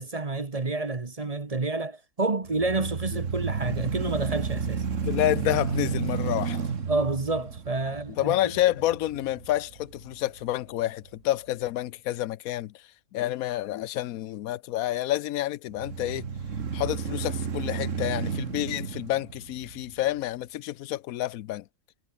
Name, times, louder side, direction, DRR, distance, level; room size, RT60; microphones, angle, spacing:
voice 1, 0.0-4.8 6.9-8.4, right 3 dB, 30° right, 1.2 m, -29 dB
sound 1, 2.4-10.6 11.1-11.2 15.7-20.2, right 6 dB, 65° right, 1.9 m, -32 dB
voice 2, 5.0-6.6 8.2-12.7 13.1-16.3 16.7-21.6, left 14 dB, 90° left, 1.1 m, -29 dB
omnidirectional pair, 1.4 m